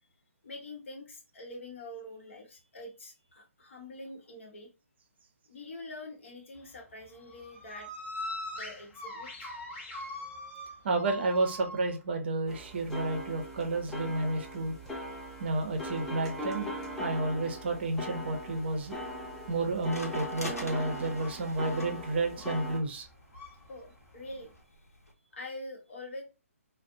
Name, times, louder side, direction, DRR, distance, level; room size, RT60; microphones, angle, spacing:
voice 1, 0.4-4.7 5.5-7.9 8.5-9.5 23.7-24.5 25.3-26.2, left 2 dB, 55° left, 1 dB, 0.8 m, -45 dB
sound 1, 6.5-24.6, left 1 dB, 25° left, 0.8 m, -45 dB
voice 2, 10.8-14.7 15.4-16.7 17.0-19.0 19.5-23.1, right 2 dB, 45° right, 4 dB, 0.6 m, -31 dB
sound 2, 12.5-22.8, left 1 dB, 5° left, 0.4 m, -40 dB
sound 3, 18.3-25.1, left 1 dB, 85° left, 0.8 m, -48 dB
2.4 x 2.0 x 2.5 m, 0.31 s
figure-of-eight pair, 135°, 8 cm